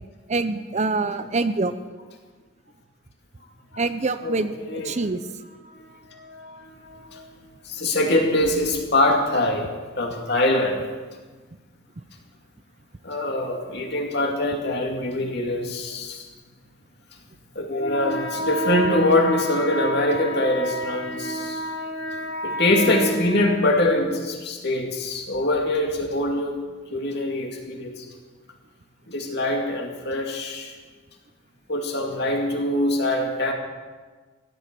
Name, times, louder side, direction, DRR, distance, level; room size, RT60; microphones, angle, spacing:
voice 1, 0.3-1.7 3.8-5.2, right 3 dB, 35° right, 12 dB, 0.5 m, -25 dB
voice 2, 4.2-5.0 5.7-7.2 7.6-9.7 10.0-10.8 13.0-16.3 17.5-26.5 26.9-28.1 29.1-30.8 31.7-33.5, left 1 dB, 50° left, 2 dB, 2.6 m, -24 dB
16.0 x 11.5 x 7.7 m, 1.4 s
head